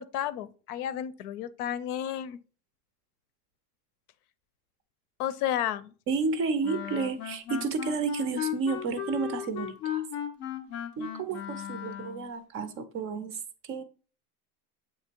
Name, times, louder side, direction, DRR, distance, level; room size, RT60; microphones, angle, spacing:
voice 1, 0.0-2.4 5.2-5.9, left 11 dB, 70° left, 0.7 m, -32 dB
voice 2, 6.1-10.0 11.0-13.8, right 4 dB, 30° right, 0.5 m, -31 dB
Wind instrument woodwind instrument, 6.6-12.3, left 10 dB, 25° left, 0.4 m, -36 dB
7.6 x 2.9 x 4.4 m
supercardioid pair, 150°, 47 cm